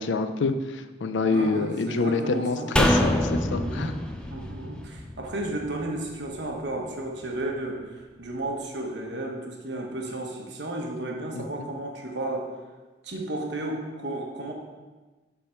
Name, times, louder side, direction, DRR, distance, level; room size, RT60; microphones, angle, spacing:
voice 1, 0.0-3.9 11.3-11.7, left 3 dB, 70° left, 9 dB, 0.4 m, -27 dB
voice 2, 1.2-2.7 3.5-3.9 4.3-12.5 13.0-14.5, right 1 dB, 65° right, 1 dB, 1.1 m, -33 dB
sound 1, 2.8-6.1 6.4-6.5, equal, 5° left, 0.4 m, -25 dB
7.2 x 3.6 x 5.7 m, 1.3 s
head